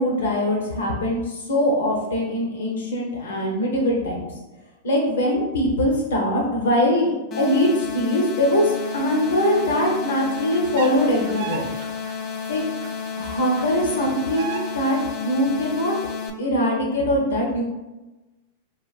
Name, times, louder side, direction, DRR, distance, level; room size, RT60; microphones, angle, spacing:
voice 1, 0.0-4.3 4.8-11.6 12.5-12.6 13.2-15.9 16.4-17.7, equal, 80° left, -1 dB, 0.9 m, -22 dB
sound 1, 7.3-16.3, left 6 dB, 35° left, 0.5 m, -32 dB
sound 2, 8.7-15.3, right 5 dB, 65° right, 0.5 m, -39 dB
3.8 x 2.5 x 2.5 m, 1.1 s
hypercardioid pair, 115°, 0 cm